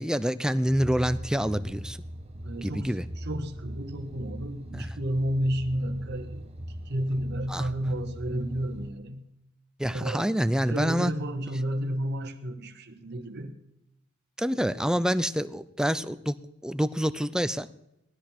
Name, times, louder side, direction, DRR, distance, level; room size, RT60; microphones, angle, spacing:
voice 1, 0.0-2.0 2.6-3.0 4.7-4.9 7.5-7.7 9.8-11.1 14.4-16.3 16.6-17.7, equal, 5° right, 13 dB, 0.5 m, -27 dB
sound 1, 0.6-8.9, equal, 30° right, 1.0 m, -41 dB
voice 2, 2.4-6.4 6.8-9.3 9.9-10.3 10.7-13.6 14.5-14.7, equal, 55° right, 6 dB, 1.4 m, -31 dB
17.5 x 13.0 x 4.3 m, 0.81 s
head